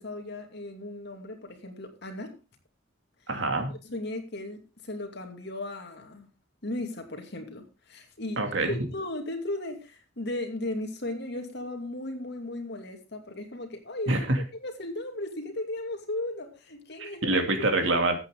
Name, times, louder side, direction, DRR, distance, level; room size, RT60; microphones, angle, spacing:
voice 1, 0.0-2.4 3.8-6.3 6.6-14.2 14.5-17.7, left 1 dB, 60° left, 2.6 m, -36 dB
voice 2, 3.3-3.7 8.4-8.8 14.1-14.4 17.0-18.2, right 2 dB, 70° right, 2.6 m, -25 dB
14.0 x 8.9 x 3.8 m
head